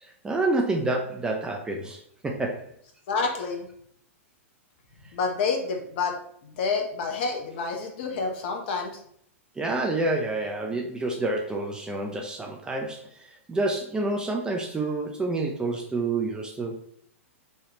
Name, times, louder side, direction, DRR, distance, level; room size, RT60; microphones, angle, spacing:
voice 1, 0.0-2.7 9.6-16.8, right 2 dB, 10° right, 1 dB, 0.4 m, -28 dB
voice 2, 3.1-3.7 5.1-6.1 6.4-9.0, left 4 dB, 50° left, 2 dB, 0.8 m, -28 dB
3.1 x 2.3 x 3.0 m, 0.65 s
figure-of-eight pair, 105°, 8 cm